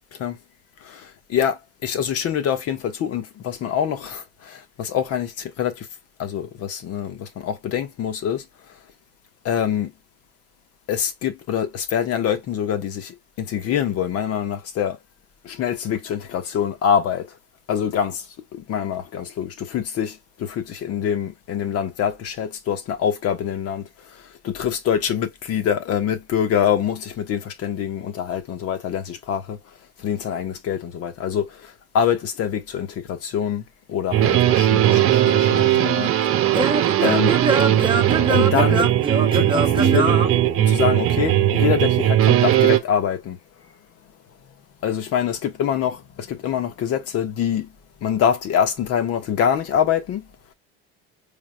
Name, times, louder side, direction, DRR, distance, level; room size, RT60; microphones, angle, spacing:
voice 1, 0.8-5.9 6.2-8.8 9.4-9.9 10.9-15.0 15.4-17.4 17.7-18.3 18.5-29.6 30.0-36.1 37.0-37.4 38.3-38.9 39.3-40.2 40.6-43.4 44.8-47.7 48.0-50.3, left 8 dB, 50° left, 1.3 m, -25 dB
sound 1, 34.1-42.8, right 12 dB, 45° right, 0.9 m, -18 dB
Singing / Plucked string instrument, 35.3-41.1, right 4 dB, 15° right, 1.0 m, -24 dB
4.7 x 3.6 x 2.3 m
supercardioid pair, 90°, 30 cm